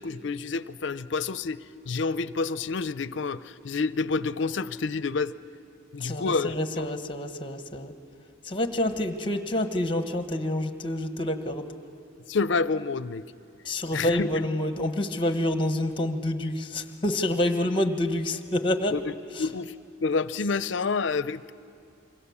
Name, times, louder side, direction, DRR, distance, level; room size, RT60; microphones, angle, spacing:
voice 1, 0.0-5.3 5.9-6.9 12.3-13.3 13.9-14.3 18.9-19.1 19.4-19.7 20.0-21.5, left 4 dB, 65° left, 15 dB, 0.5 m, -28 dB
voice 2, 6.0-7.9 8.5-11.7 13.6-18.9 19.4-19.5, left 1 dB, 25° left, 8 dB, 1.2 m, -27 dB
26.5 x 24.0 x 7.2 m, 2.5 s
head